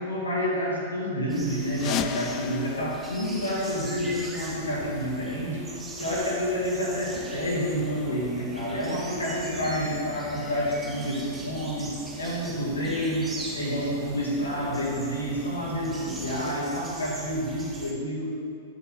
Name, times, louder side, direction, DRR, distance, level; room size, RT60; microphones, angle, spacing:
voice 1, 0.0-5.6 6.0-18.4, equal, 75° left, -5 dB, 2.5 m, -29 dB
sound 1, 1.3-17.9, right 2 dB, 10° right, 1.3 m, -42 dB
sound 2, 1.7-4.3, left 11 dB, 35° left, 0.3 m, -35 dB
Race car auto racing, 3.9-16.5, left 1 dB, 15° left, 2.3 m, -43 dB
10.0 x 8.3 x 3.7 m, 2.4 s
figure-of-eight pair, 100°, 0 cm